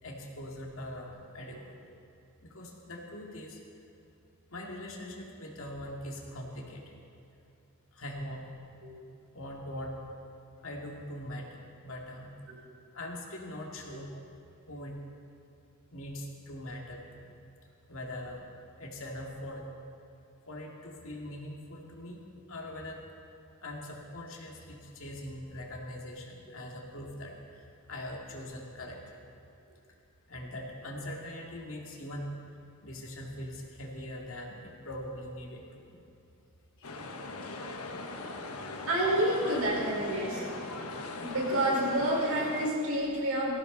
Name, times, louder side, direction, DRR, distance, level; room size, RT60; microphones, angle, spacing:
voice 1, 0.0-1.8 2.4-3.6 4.5-6.9 7.9-8.5 9.3-10.0 10.6-12.3 12.9-14.1 14.7-14.9 15.9-17.3 17.9-18.5 18.8-19.6 20.5-22.2 22.5-23.0 23.6-29.0 30.3-32.3 32.8-36.0 36.8-36.9, left 1 dB, 65° left, -1 dB, 2.5 m, -42 dB
sound 1, 36.8-42.7, left 2 dB, 85° left, 1.3 m, -40 dB
voice 2, 38.9-40.4 41.2-43.5, right 1 dB, 75° right, -4 dB, 4.6 m, -28 dB
19.5 x 15.5 x 4.0 m, 2.7 s
head